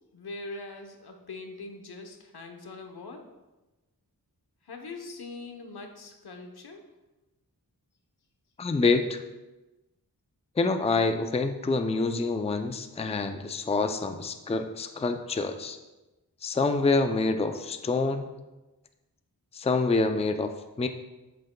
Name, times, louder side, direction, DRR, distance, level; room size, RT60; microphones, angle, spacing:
voice 1, 0.1-3.3 4.6-6.8, left 3 dB, 85° left, 4 dB, 0.9 m, -42 dB
voice 2, 8.6-9.2 10.6-15.8 16.4-18.3 19.5-20.5 20.8-20.9, left 3 dB, 15° left, 7 dB, 0.4 m, -26 dB
7.6 x 7.5 x 2.2 m, 1.1 s
wide cardioid pair, 65°, 38 cm